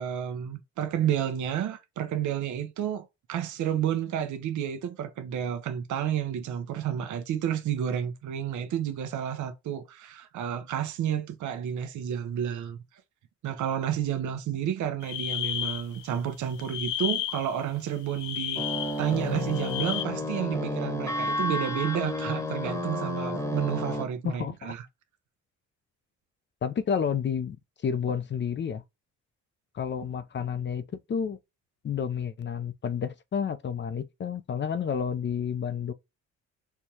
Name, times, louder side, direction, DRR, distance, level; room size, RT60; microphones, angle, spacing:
voice 1, 0.0-12.8 13.4-18.6 19.0-24.8, right 9 dB, 75° right, 0.8 m, -31 dB
sound 1, 15.0-16.2 16.5-17.6 18.1-20.0, left 12 dB, 80° left, 0.7 m, -33 dB
sound 2, 18.6-24.0, left 1 dB, 10° left, 1.1 m, -31 dB
voice 2, 24.2-24.7 26.6-27.6 27.8-28.8 29.7-30.8 31.1-31.4 31.8-35.9, left 7 dB, 40° left, 0.5 m, -30 dB
4.5 x 2.3 x 2.8 m
cardioid pair, 90°, 30 cm